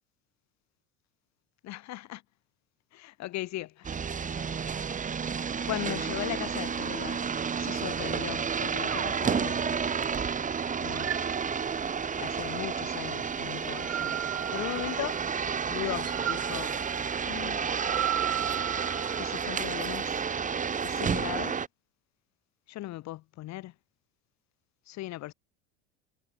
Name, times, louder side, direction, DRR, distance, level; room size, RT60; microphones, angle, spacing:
voice 1, 1.6-2.2 2.9-4.1 5.7-7.2 7.6-9.9 10.8-11.2 12.2-14.2 14.5-15.4 15.7-16.7 17.2-17.7 19.2-20.2 20.8-21.6 22.7-23.7 24.9-25.3, left 16 dB, 55° left, 6.5 m, -38 dB
sound 1, 3.8-21.7, right 6 dB, 25° right, 1.8 m, -31 dB
sound 2, 8.9-10.3 10.9-12.2 13.6-15.4 16.0-19.6, right 12 dB, 50° right, 4.1 m, -36 dB
supercardioid pair, 105°, 32 cm